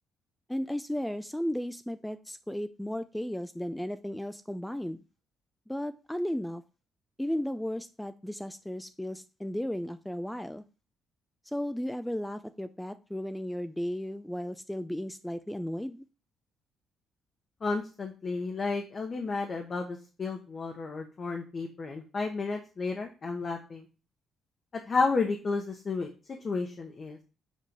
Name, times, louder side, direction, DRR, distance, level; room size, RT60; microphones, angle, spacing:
voice 1, 0.5-5.0 5.7-6.6 7.2-10.6 11.5-16.1, equal, 5° left, 11 dB, 0.4 m, -35 dB
voice 2, 17.6-23.9 24.9-26.1 26.4-27.2, left 4 dB, 40° left, 2 dB, 1.0 m, -32 dB
7.4 x 3.1 x 5.3 m, 0.33 s
cardioid pair, 90°, 0 cm